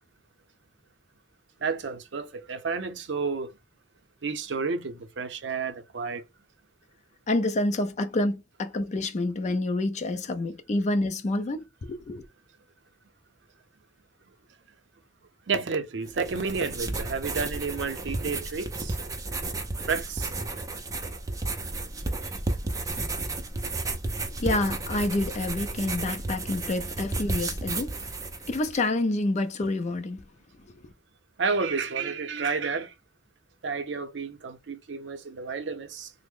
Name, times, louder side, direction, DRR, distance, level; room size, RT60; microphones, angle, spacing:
voice 1, 1.6-3.5 4.2-6.2 15.5-19.0 19.9-20.3 31.4-32.9 33.6-36.1, right 5 dB, 70° right, 0.6 m, -31 dB
voice 2, 7.3-12.2 24.4-28.0 28.5-30.2 30.7-30.9, left 2 dB, 40° left, 0.4 m, -28 dB
sound 1, 16.1-28.8, right 2 dB, 20° right, 0.5 m, -33 dB
3.4 x 2.0 x 3.5 m
head